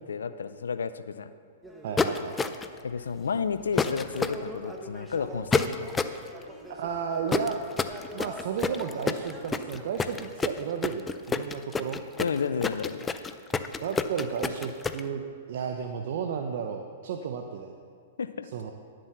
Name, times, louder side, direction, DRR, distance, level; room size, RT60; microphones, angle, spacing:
voice 1, 0.1-1.3 2.8-5.8 12.2-13.1 18.2-18.5, left 6 dB, 80° left, 12 dB, 0.5 m, -31 dB
sound 1, 1.6-9.8, right 1 dB, 5° right, 1.2 m, -45 dB
voice 2, 1.8-2.6 6.7-7.6 8.1-12.0 13.8-15.2 15.5-17.8 18.5-18.7, right 7 dB, 60° right, 4 dB, 0.7 m, -33 dB
sound 2, 2.0-2.8 3.8-4.4 5.5-6.2 7.3-15.0, left 5 dB, 15° left, 0.5 m, -28 dB
11.0 x 7.6 x 5.9 m, 2.1 s
hypercardioid pair, 120°, 0 cm